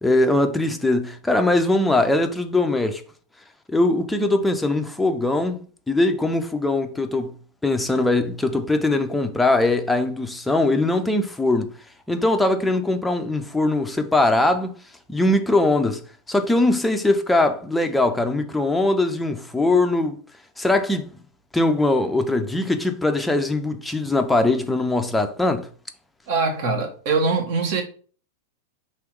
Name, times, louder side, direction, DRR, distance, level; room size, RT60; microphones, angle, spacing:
voice 1, 0.0-3.0 3.7-5.6 5.9-7.3 7.6-11.7 12.1-14.7 15.1-16.0 16.3-20.2 20.6-21.1 21.5-25.7, left 2 dB, 5° left, 0.6 m, -21 dB
voice 2, 26.3-27.8, right 4 dB, 50° right, 1.3 m, -22 dB
3.4 x 3.0 x 4.6 m
figure-of-eight pair, 95°, 0 cm